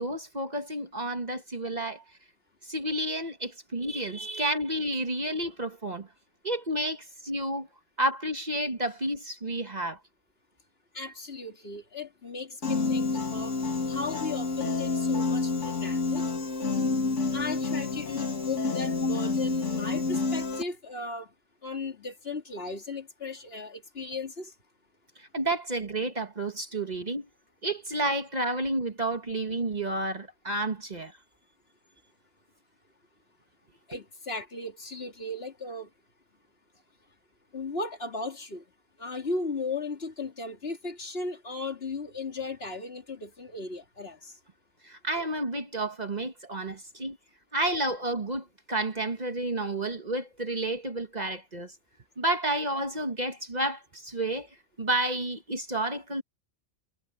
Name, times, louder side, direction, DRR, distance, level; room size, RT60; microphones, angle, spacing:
voice 1, 0.0-2.0 2.6-6.1 6.4-7.7 8.0-10.0 25.2-27.3 27.6-31.2 44.8-47.2 47.5-51.7 52.2-56.2, right 1 dB, 35° right, 1.6 m, -31 dB
voice 2, 10.9-13.5 13.9-16.3 17.3-21.3 21.6-24.5 33.9-35.9 37.5-38.6 39.0-44.3, left 3 dB, 55° left, 2.9 m, -36 dB
Piano, 12.6-20.6, left 4 dB, 85° left, 2.5 m, -29 dB
omnidirectional pair, 1.2 m